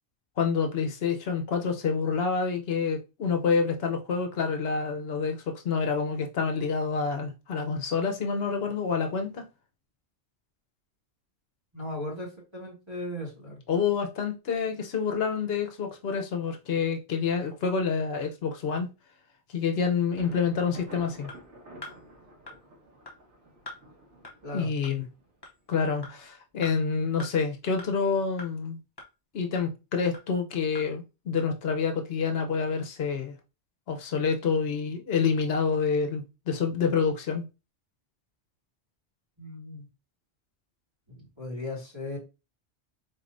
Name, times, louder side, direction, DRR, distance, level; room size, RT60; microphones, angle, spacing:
voice 1, 0.4-9.5 13.7-18.9 19.5-21.3 24.5-25.0 25.7-28.8 29.3-33.3 33.9-37.4, left 5 dB, 65° left, 1.0 m, -28 dB
voice 2, 11.7-13.6 24.4-24.7 39.4-39.9 41.1-42.2, left 1 dB, 25° right, 1.9 m, -37 dB
Thunder, 20.2-25.8, right 1 dB, 90° right, 1.8 m, -50 dB
sound 1, 21.3-21.4 21.8-21.9 22.5-22.6 23.1-23.2 23.7-23.8 24.2-24.3 24.8-24.9 25.4-25.5 26.0-26.1 26.6-26.7 27.2-27.3 27.8-27.9 28.4-28.5 29.0-29.1 29.5-29.7 30.1-30.2 30.7-30.8 31.4-31.5, left 2 dB, 25° left, 0.7 m, -42 dB
4.2 x 3.2 x 2.5 m
omnidirectional pair, 1.2 m